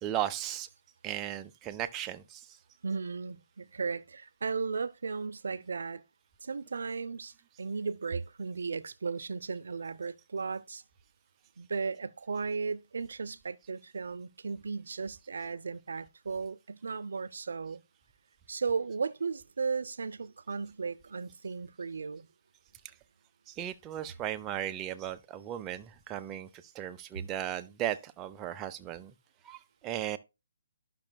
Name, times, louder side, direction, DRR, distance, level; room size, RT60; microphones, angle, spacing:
voice 1, 0.0-0.7 1.0-2.6 22.8-22.9 23.5-29.1 29.4-30.2, right 11 dB, 15° right, 0.5 m, -36 dB
voice 2, 2.8-6.0 6.4-10.8 11.6-17.8 18.5-22.3, right 5 dB, 70° right, 0.5 m, -35 dB
12.0 x 6.0 x 2.2 m
hypercardioid pair, 160°, 0 cm